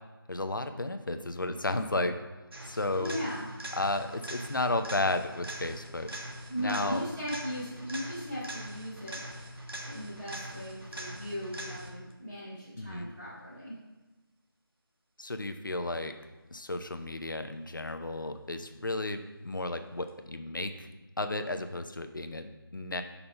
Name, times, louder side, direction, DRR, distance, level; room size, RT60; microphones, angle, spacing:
voice 1, 0.3-2.1 2.7-3.1 3.8-6.1 6.6-7.0 12.8-13.1 15.2-16.1 16.5-20.9 21.2-23.0, left 2 dB, 60° left, 8 dB, 0.6 m, -33 dB
sound 1, 2.5-12.1 20.1-20.2, right 1 dB, 70° right, 1.5 m, -42 dB
voice 2, 3.0-3.4 6.5-9.2 9.8-13.7, equal, 5° right, -17 dB, 1.0 m, -37 dB
5.4 x 4.3 x 5.4 m, 1.1 s
figure-of-eight pair, 175°, 12 cm